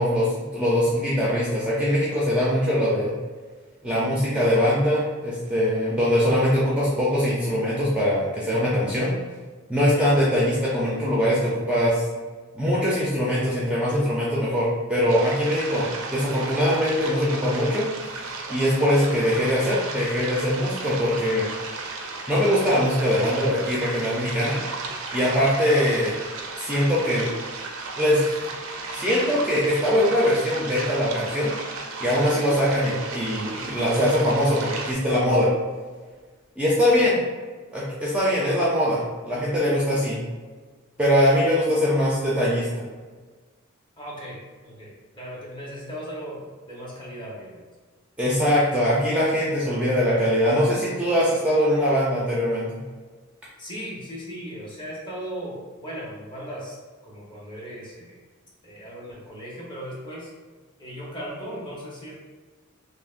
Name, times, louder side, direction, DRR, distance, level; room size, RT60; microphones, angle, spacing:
voice 1, 0.0-3.1 3.8-9.1 9.7-12.0 12.6-17.9 18.5-21.5 22.3-24.6 25.1-26.1 26.6-27.3 28.0-28.3 28.9-31.5 32.0-35.5 36.6-37.2 37.7-40.2 41.0-42.7 48.2-52.8, equal, 5° right, -7 dB, 0.6 m, -22 dB
sound 1, 15.1-34.9, right 3 dB, 70° right, 0.5 m, -35 dB
voice 2, 44.0-44.4 44.6-47.6 53.6-56.8 57.0-58.1 58.6-60.3 60.8-62.1, equal, 20° left, -6 dB, 1.1 m, -37 dB
6.0 x 2.1 x 2.5 m, 1.4 s
head